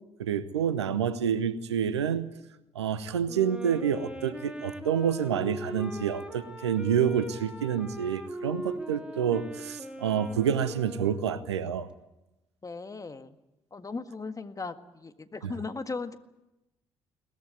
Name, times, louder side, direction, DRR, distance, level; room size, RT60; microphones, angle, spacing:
voice 1, 0.2-2.3 2.7-11.9 15.4-15.5, right 8 dB, 80° right, 16 dB, 0.9 m, -28 dB
Wind instrument woodwind instrument, 3.2-11.6, equal, 5° right, 3.2 m, -40 dB
voice 2, 12.6-13.4 13.7-16.2, left 4 dB, 25° left, 9 dB, 1.8 m, -37 dB
22.0 x 19.5 x 9.3 m, 0.95 s
figure-of-eight pair, 45°, 14 cm